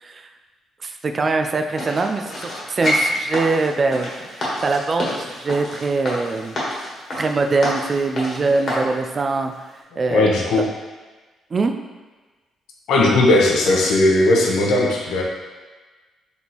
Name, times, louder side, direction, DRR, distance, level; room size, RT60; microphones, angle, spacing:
voice 1, 0.8-6.6 7.2-9.5 10.0-10.3 11.5-11.7, right 3 dB, 40° right, 5 dB, 0.3 m, -22 dB
sound 1, 1.8-8.9 9.4-9.5, left 1 dB, 50° left, 1.4 m, -27 dB
voice 2, 9.9-10.6 12.9-15.2, left 2 dB, 80° left, -2 dB, 0.8 m, -17 dB
4.1 x 3.5 x 3.0 m, 1.3 s
cardioid pair, 90°, 0 cm